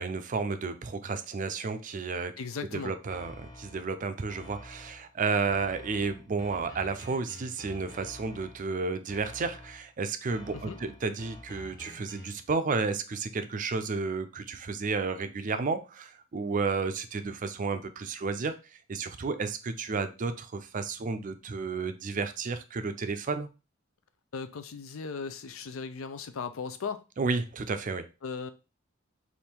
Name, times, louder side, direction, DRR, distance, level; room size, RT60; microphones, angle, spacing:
voice 1, 0.0-2.3 2.7-18.6 18.9-23.5 27.2-28.1, right 4 dB, 40° right, 0.4 m, -32 dB
voice 2, 2.4-2.9 10.5-10.8 24.3-27.0 28.2-28.5, left 5 dB, 85° left, 0.5 m, -37 dB
sound 1, 3.1-3.9 4.3-5.1 5.5-8.7 9.1-9.9 10.3-12.5, left 1 dB, 20° left, 0.8 m, -48 dB
3.5 x 2.6 x 4.3 m
head